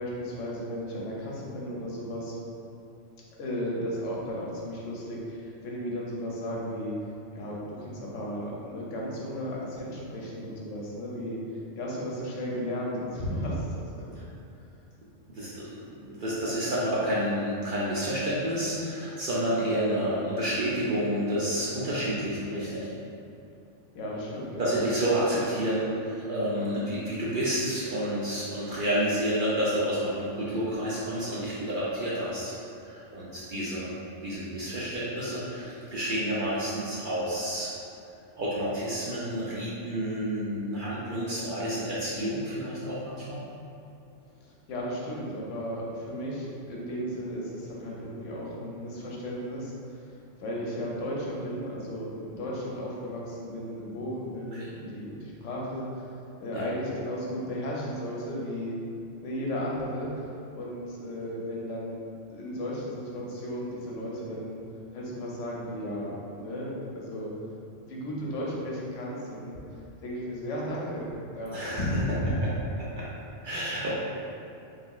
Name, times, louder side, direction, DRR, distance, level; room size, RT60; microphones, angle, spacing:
voice 1, 0.0-2.4 3.4-6.9 7.3-11.4 11.8-14.3 23.9-24.8 44.4-50.1 50.4-56.1 56.4-58.8 59.2-60.3 60.5-62.0 62.3-64.6 64.9-67.3 67.8-69.6 70.0-72.4, equal, 80° left, -4 dB, 0.9 m, -34 dB
voice 2, 15.3-22.9 24.6-32.5 32.8-33.9 34.2-37.7 38.4-43.4 54.5-54.7 56.5-56.7 71.5-71.8 72.8-73.1 73.4-73.9, equal, 60° right, -8 dB, 0.6 m, -29 dB
3.2 x 2.8 x 2.3 m, 2.6 s
omnidirectional pair, 1.3 m